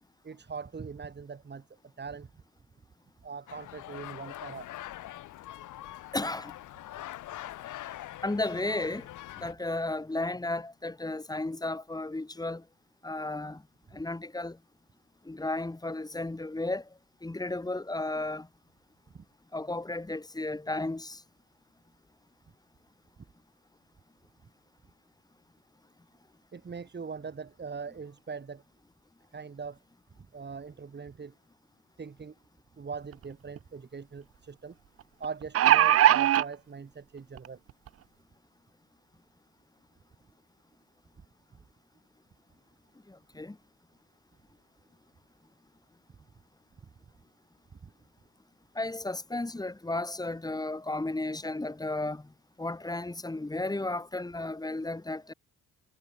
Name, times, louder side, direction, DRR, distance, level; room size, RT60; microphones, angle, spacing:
voice 1, 0.2-2.3 3.2-4.7 19.1-19.2 26.5-28.6 29.3-29.8 30.2-31.3 32.0-32.3 32.8-34.8 35.2-37.6 41.5-41.6 47.8-47.9, right 5 dB, 35° right, 4.0 m, -41 dB
sound 1, 3.5-9.5, left 14 dB, 85° left, 6.1 m, -43 dB
voice 2, 6.1-6.5 8.2-9.1 9.4-12.6 13.0-13.6 13.9-14.6 15.2-16.9 17.2-18.5 19.5-21.2 43.1-43.6 48.7-52.3 52.6-55.3, left 2 dB, 15° left, 3.0 m, -33 dB
sound 2, 33.1-33.2 33.6-33.7 35.2-36.4 37.4-37.5 37.9-38.0, right 12 dB, 50° right, 0.6 m, -20 dB
cardioid pair, 90°, 30 cm